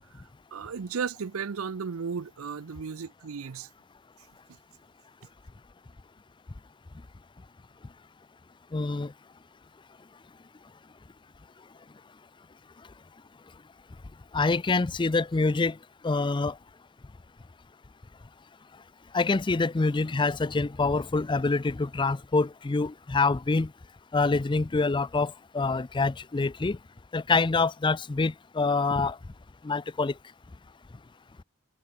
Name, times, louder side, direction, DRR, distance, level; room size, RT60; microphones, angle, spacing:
voice 1, 0.5-3.7, right 6 dB, 80° right, 0.6 m, -34 dB
voice 2, 8.7-9.1 14.3-15.8 16.0-16.6 19.1-23.7 24.1-26.8 27.1-29.2 29.6-30.1, left 3 dB, 20° left, 0.5 m, -26 dB
head